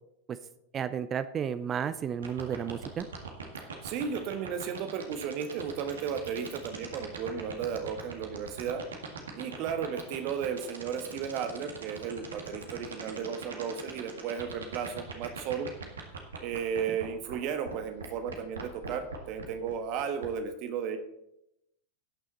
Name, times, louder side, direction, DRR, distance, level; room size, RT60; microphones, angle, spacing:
voice 1, 0.7-3.1 16.9-17.0, right 8 dB, 25° right, 13 dB, 0.5 m, -32 dB
sound 1, 2.2-17.4 17.7-17.8 18.0-20.3, right 6 dB, 70° right, 1.9 m, -40 dB
voice 2, 3.8-8.8 9.3-15.7 16.4-21.0, right 7 dB, 40° right, 8 dB, 1.4 m, -34 dB
18.0 x 6.3 x 4.1 m, 0.81 s
figure-of-eight pair, 90°, 0 cm